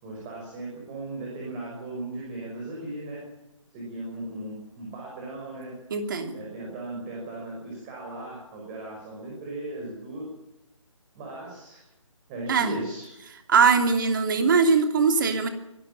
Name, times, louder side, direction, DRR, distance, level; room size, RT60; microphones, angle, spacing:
voice 1, 0.0-3.2 3.7-5.8 6.3-10.3 11.1-11.9 12.3-13.1, right 2 dB, 20° right, -2 dB, 6.0 m, -37 dB
voice 2, 5.9-6.4 12.5-12.7 13.5-15.5, right 5 dB, 40° right, 6 dB, 2.8 m, -21 dB
23.5 x 13.5 x 9.1 m, 0.88 s
figure-of-eight pair, 150°, 17 cm